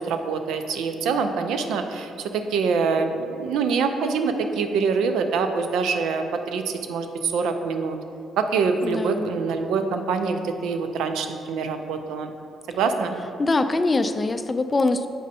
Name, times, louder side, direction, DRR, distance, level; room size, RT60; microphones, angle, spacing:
voice 1, 0.0-8.0 8.4-12.3 12.7-13.2, right 5 dB, 85° right, 7 dB, 0.4 m, -25 dB
voice 2, 8.8-9.4 13.4-15.1, left 2 dB, 25° left, 9 dB, 0.3 m, -23 dB
7.6 x 5.2 x 2.7 m, 2.7 s
cardioid pair, 90°, 0 cm